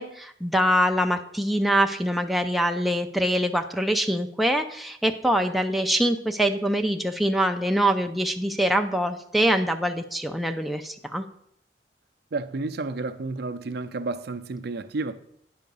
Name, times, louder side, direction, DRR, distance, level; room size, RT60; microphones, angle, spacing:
voice 1, 0.0-11.2, equal, ahead, 0.4 m, -24 dB
voice 2, 12.3-15.1, right 3 dB, 65° right, 0.5 m, -31 dB
9.4 x 5.7 x 5.3 m
head